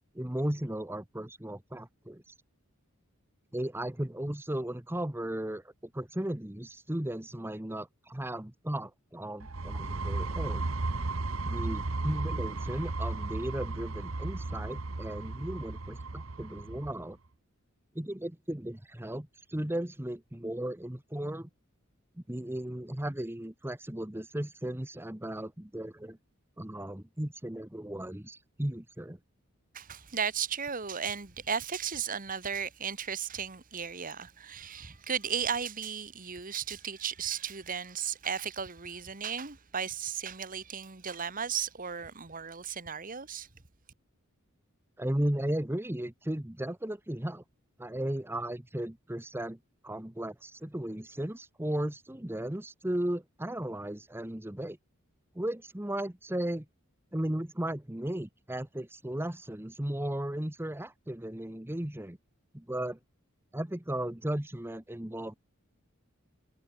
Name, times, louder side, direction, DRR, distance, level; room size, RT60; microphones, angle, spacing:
voice 1, 0.1-2.3 3.5-10.7 11.4-17.2 17.9-21.5 22.3-26.2 26.6-29.2 45.0-47.4 47.8-49.6 49.8-54.8 55.3-56.7 57.1-62.2 62.5-63.0 63.5-65.3, right 1 dB, 10° right, 1.0 m, -35 dB
sound 1, 9.4-17.0, right 2 dB, 70° right, 1.3 m, -35 dB
voice 2, 29.7-43.5, right 7 dB, 40° right, 1.6 m, -35 dB
head